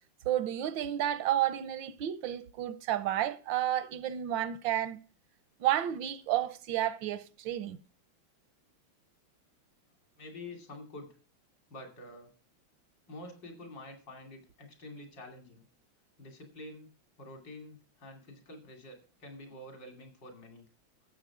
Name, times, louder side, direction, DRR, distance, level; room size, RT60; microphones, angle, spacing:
voice 1, 0.2-5.0 5.6-7.8, right 12 dB, 80° right, 1.5 m, -31 dB
voice 2, 10.1-11.1 11.7-12.3 13.1-15.6 16.2-16.9 17.2-20.7, left 1 dB, 60° left, 3.4 m, -48 dB
13.0 x 8.0 x 4.9 m
omnidirectional pair, 2.1 m